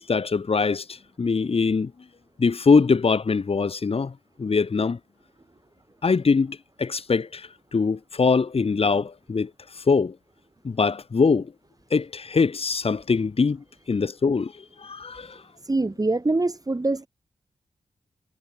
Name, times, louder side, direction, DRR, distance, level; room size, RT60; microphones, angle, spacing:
voice 1, 0.0-1.9 2.4-4.1 4.4-5.0 6.0-9.5 9.7-10.1 10.6-11.5 11.9-14.5 14.8-15.4, left 4 dB, 55° left, 2.3 m, -23 dB
voice 2, 15.6-17.1, right 2 dB, 30° right, 7.9 m, -24 dB
cardioid pair, 55°, 12 cm